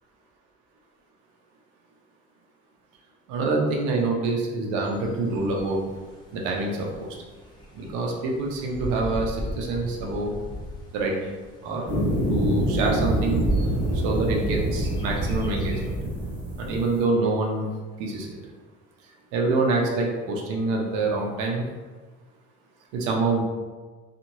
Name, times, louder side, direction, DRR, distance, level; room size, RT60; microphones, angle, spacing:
voice 1, 3.3-5.8 6.3-7.2 7.7-10.3 10.9-11.3 11.6-11.8 12.3-13.4 13.9-15.9 16.6-17.7 18.0-18.4 19.3-21.6 22.9-23.4, right 3 dB, 85° right, 0 dB, 0.7 m, -26 dB
Bird, 4.8-15.9, equal, 15° left, 0.8 m, -41 dB
sound 1, 11.8-16.9, right 1 dB, 15° right, 1.4 m, -25 dB
2.9 x 2.5 x 2.6 m, 1.3 s
cardioid pair, 115°, 30 cm